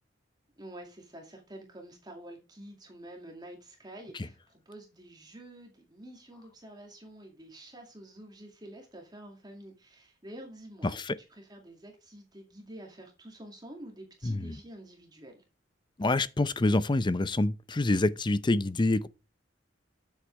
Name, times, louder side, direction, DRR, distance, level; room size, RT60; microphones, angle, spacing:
voice 1, 0.6-11.0 11.3-15.4, right 1 dB, 20° right, 2.2 m, -48 dB
voice 2, 10.8-11.2 14.2-14.6 16.0-19.1, left 2 dB, 25° left, 0.6 m, -26 dB
9.7 x 8.2 x 3.3 m
head